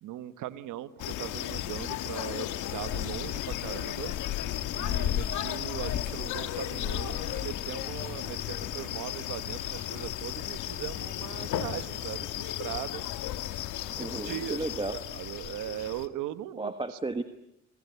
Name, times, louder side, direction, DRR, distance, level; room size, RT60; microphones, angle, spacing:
voice 1, 0.0-4.1 4.7-13.0 13.9-14.6 15.1-16.7, right 13 dB, 90° right, 13 dB, 1.3 m, -39 dB
sound 1, 1.0-16.1, left 12 dB, 90° left, 1.4 m, -34 dB
voice 2, 13.9-15.0 16.6-17.2, right 3 dB, 15° right, 9 dB, 1.4 m, -34 dB
26.5 x 21.0 x 8.2 m, 0.78 s
cardioid pair, 90°, 30 cm